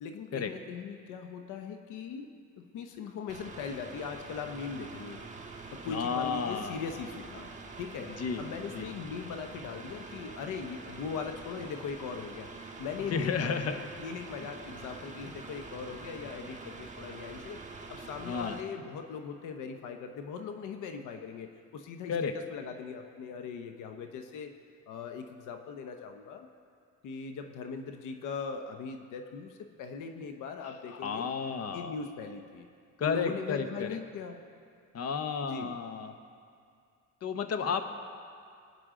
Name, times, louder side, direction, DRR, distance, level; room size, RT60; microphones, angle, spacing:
voice 1, 0.0-2.3 2.6-5.2 5.7-7.5 7.8-8.1 8.4-12.5 12.8-17.6 17.9-24.5 24.9-26.5 27.0-31.3 31.7-32.7 33.0-34.4 35.4-35.7, left 5 dB, 85° left, 6 dB, 0.9 m, -40 dB
Mechanical fan, 3.3-18.6, right 3 dB, 25° right, 1.4 m, -46 dB
voice 2, 5.8-6.8 8.2-8.4 8.7-8.9 13.1-13.8 18.2-18.6 22.1-22.3 30.6-31.9 33.0-34.0 34.9-36.1 37.2-37.8, left 6 dB, 55° left, 8 dB, 1.0 m, -32 dB
21.5 x 9.5 x 3.8 m, 2.3 s
cardioid pair, 90°, 30 cm